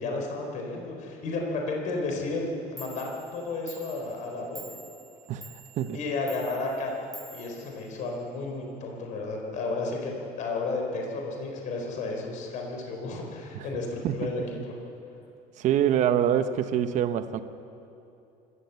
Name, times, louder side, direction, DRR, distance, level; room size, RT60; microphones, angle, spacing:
voice 1, 0.0-4.8 5.9-6.9 7.3-10.1 10.4-14.7, left 3 dB, 50° left, 1 dB, 4.1 m, -32 dB
Clock, 2.5-2.6 2.8-8.4, right 2 dB, 20° right, 2.4 m, -48 dB
voice 2, 15.6-17.4, right 10 dB, 50° right, 10 dB, 1.0 m, -25 dB
25.0 x 14.0 x 8.2 m, 2.7 s
cardioid pair, 150°, 16 cm